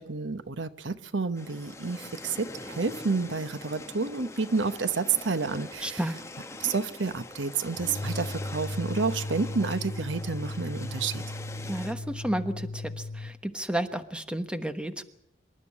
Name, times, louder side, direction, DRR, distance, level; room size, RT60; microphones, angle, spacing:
voice 1, 0.0-6.0 6.6-11.2, right 4 dB, 80° right, 13 dB, 1.0 m, -30 dB
sound 1, 1.3-11.9, left 2 dB, 15° left, 1.0 m, -43 dB
voice 2, 5.8-6.1 11.7-15.0, right 1 dB, 5° right, 9 dB, 1.2 m, -32 dB
sound 2, 7.8-13.4, left 1 dB, 50° left, 1.0 m, -36 dB
26.5 x 12.0 x 9.7 m, 0.83 s
head